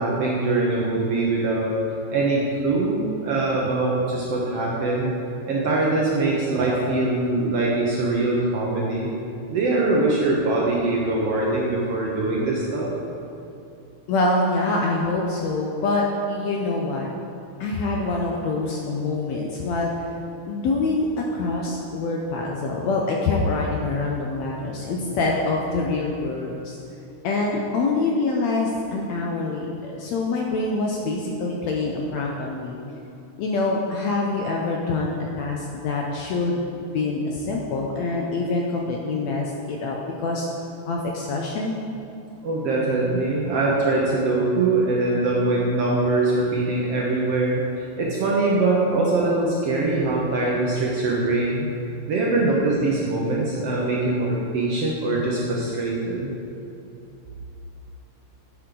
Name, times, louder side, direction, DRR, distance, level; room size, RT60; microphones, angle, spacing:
voice 1, 0.0-1.8 2.1-5.2 5.5-9.1 9.5-12.9 42.4-51.7 52.1-56.3, right 2 dB, 65° right, -4 dB, 1.6 m, -23 dB
voice 2, 14.1-17.1 17.6-20.0 20.5-26.8 27.2-32.8 33.4-40.5 40.9-41.8, left 3 dB, 75° left, -1 dB, 1.7 m, -25 dB
9.3 x 8.3 x 3.9 m, 2.8 s
omnidirectional pair, 3.7 m